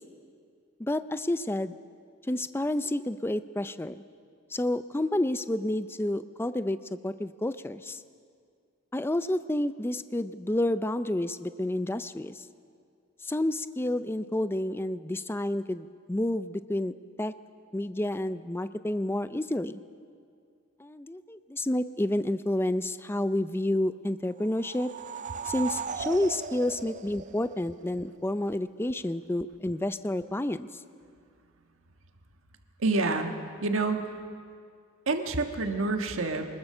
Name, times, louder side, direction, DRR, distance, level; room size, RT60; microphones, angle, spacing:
voice 1, 0.8-1.7 2.3-4.0 4.5-6.8 7.0-8.0 8.9-12.4 13.2-17.3 17.7-19.8 20.8-24.9 25.5-30.7, left 1 dB, 10° left, 12 dB, 0.5 m, -30 dB
sound 1, 24.4-27.9, right 6 dB, 40° right, 0.5 m, -37 dB
voice 2, 32.8-33.3 33.6-34.0 35.1-36.5, right 3 dB, 80° right, 5 dB, 1.6 m, -27 dB
25.0 x 20.5 x 6.8 m, 2.2 s
head